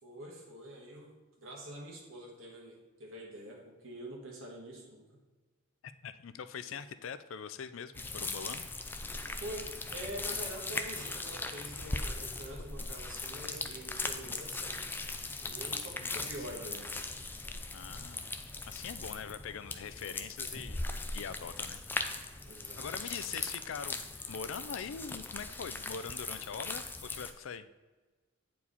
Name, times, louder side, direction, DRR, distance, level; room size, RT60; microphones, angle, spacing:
voice 1, 0.0-5.2 9.3-14.8 15.4-16.9 22.4-22.9, right 1 dB, 80° right, -1 dB, 1.8 m, -46 dB
voice 2, 5.8-8.7 15.6-16.3 17.7-18.3 18.7-20.8 21.1-21.8 22.1-27.7, left 6 dB, 80° left, 13 dB, 0.4 m, -43 dB
sound 1, 7.9-27.3, left 3 dB, 10° left, 0.3 m, -39 dB
8.5 x 4.6 x 4.1 m, 1.3 s
head